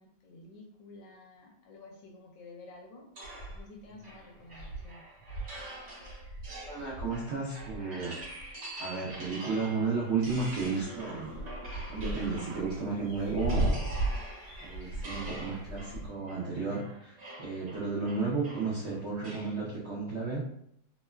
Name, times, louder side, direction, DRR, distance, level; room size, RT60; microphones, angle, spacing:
voice 1, 0.0-3.1 3.5-5.1, left 3 dB, 80° left, 0 dB, 1.2 m, -51 dB
sound 1, 3.2-3.8 4.2-4.3 4.5-8.6 9.1-9.9 10.2-16.1, right 1 dB, 55° left, 1.2 m, -37 dB
sound 2, 3.2-13.0 13.4-19.6, right 1 dB, 50° right, 1.2 m, -46 dB
voice 2, 6.5-8.2 8.8-11.4 11.9-13.8 14.6-20.4, right 4 dB, 75° right, -6 dB, 0.6 m, -33 dB
3.0 x 2.1 x 2.2 m, 0.72 s
omnidirectional pair, 1.9 m